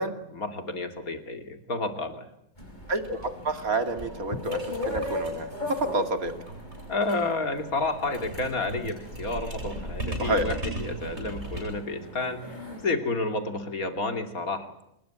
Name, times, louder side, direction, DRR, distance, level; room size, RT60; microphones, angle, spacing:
voice 1, 0.3-2.3 2.7-2.8 6.9-14.7, left 3 dB, 80° left, 7 dB, 3.1 m, -30 dB
sound 1, 2.6-12.9, left 2 dB, 30° left, 5.4 m, -39 dB
voice 2, 2.9-6.3 10.2-10.5, right 2 dB, 80° right, 7 dB, 3.0 m, -29 dB
sound 2, 3.0-3.1 3.4-3.5 3.7-11.9, right 1 dB, 50° right, 8.0 m, -38 dB
27.0 x 21.0 x 8.9 m, 0.81 s
omnidirectional pair, 1.5 m